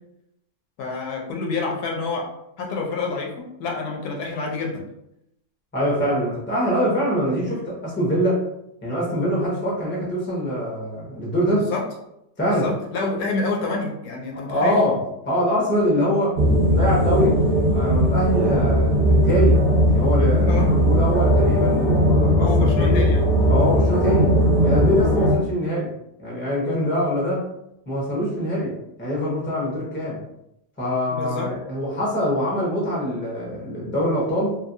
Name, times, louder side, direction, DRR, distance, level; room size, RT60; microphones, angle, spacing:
voice 1, 0.8-2.3 2.6-4.8 11.5-11.8 12.5-14.8 20.5-20.7 22.4-23.3 25.1-25.3 31.1-31.5, left 3 dB, 75° left, 0 dB, 1.1 m, -28 dB
voice 2, 5.7-8.4 8.8-11.7 12.4-12.7 14.3-16.4 16.7-17.4 17.7-23.0 23.5-24.3 24.6-25.9 26.2-27.5 27.9-28.7 29.0-30.2 30.8-34.6, equal, 10° left, -6 dB, 0.6 m, -24 dB
sound 1, 16.3-25.3, equal, 35° right, 0.6 m, -18 dB
2.7 x 2.6 x 2.6 m, 0.82 s
omnidirectional pair, 1.7 m